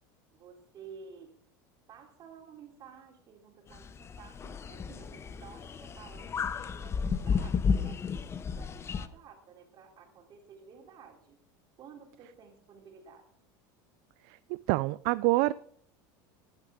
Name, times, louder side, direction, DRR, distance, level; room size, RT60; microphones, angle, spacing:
voice 1, 0.3-1.4 1.9-11.4 11.8-13.2, right 6 dB, 45° right, 2 dB, 3.2 m, -53 dB
sound 1, 3.7-9.1, left 6 dB, 25° left, 0.7 m, -33 dB
voice 2, 14.7-15.5, right 21 dB, 65° right, 17 dB, 0.4 m, -26 dB
14.0 x 10.5 x 3.6 m, 0.62 s
supercardioid pair, 120°, 10 cm